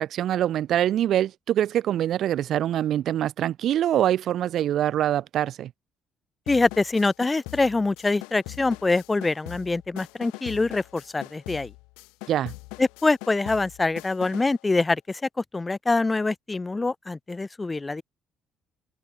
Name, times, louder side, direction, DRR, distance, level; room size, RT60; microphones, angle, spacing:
voice 1, 0.0-5.7 12.3-12.5, right 11 dB, 65° right, 0.7 m, -24 dB
sound 1, 6.5-14.6, left 27 dB, 90° left, 0.9 m, -42 dB
voice 2, 6.5-11.7 12.8-15.2 15.5-18.0, left 3 dB, 20° left, 0.6 m, -24 dB
open air
supercardioid pair, 75°, 0 cm